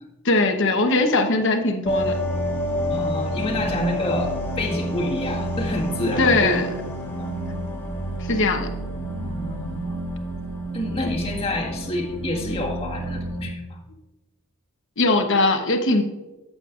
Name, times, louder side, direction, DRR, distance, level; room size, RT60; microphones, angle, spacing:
voice 1, 0.2-2.2 6.2-6.7 8.2-8.7 15.0-16.0, left 2 dB, 55° left, 5 dB, 1.0 m, -20 dB
sound 1, 1.9-13.5, equal, 10° left, 2.1 m, -28 dB
voice 2, 2.9-6.6 7.0-7.3 9.2-10.0 10.7-13.8, left 1 dB, 25° left, -1 dB, 1.7 m, -28 dB
14.0 x 7.6 x 2.5 m, 1.1 s
head